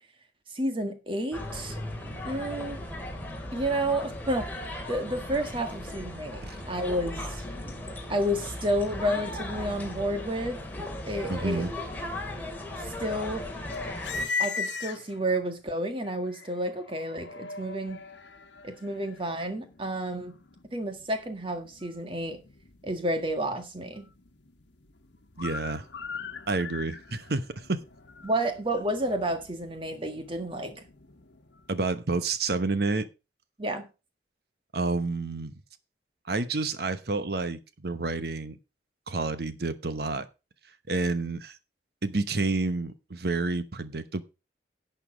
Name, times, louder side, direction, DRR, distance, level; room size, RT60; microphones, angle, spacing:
voice 1, 0.5-1.8 2.2-2.8 3.5-4.5 4.9-6.4 6.7-7.4 8.1-10.6 11.1-11.6 12.8-13.5 14.4-18.0 18.6-20.3 20.7-22.4 22.8-24.1 28.2-30.8 33.6-33.9, right 1 dB, 30° right, 1.8 m, -30 dB
sound 1, 1.3-14.3, left 1 dB, 10° left, 2.3 m, -37 dB
voice 2, 11.3-11.7 25.4-25.8 26.5-27.8 31.7-33.1 34.7-35.6 36.3-38.6 39.1-40.3 40.9-41.6 42.0-44.2, right 3 dB, 60° right, 1.0 m, -29 dB
sound 2, 13.7-15.4 16.0-31.8, left 5 dB, 85° left, 1.2 m, -40 dB
11.5 x 6.8 x 5.1 m
head